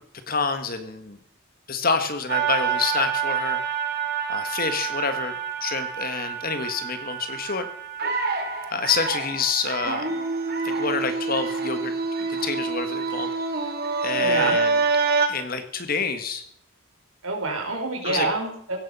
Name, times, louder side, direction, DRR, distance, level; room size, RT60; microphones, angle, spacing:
voice 1, 0.3-1.2 1.7-3.6 4.3-7.7 8.7-10.1 10.6-13.3 13.6-13.7 14.0-14.8 15.3-16.4 18.0-18.3, left 5 dB, 45° left, 9 dB, 1.7 m, -28 dB
sound 1, 2.3-15.3, right 5 dB, 50° right, 2.4 m, -27 dB
voice 2, 14.1-14.6 17.2-18.8, right 3 dB, 85° right, 2 dB, 4.6 m, -27 dB
16.5 x 13.5 x 5.6 m, 0.67 s
head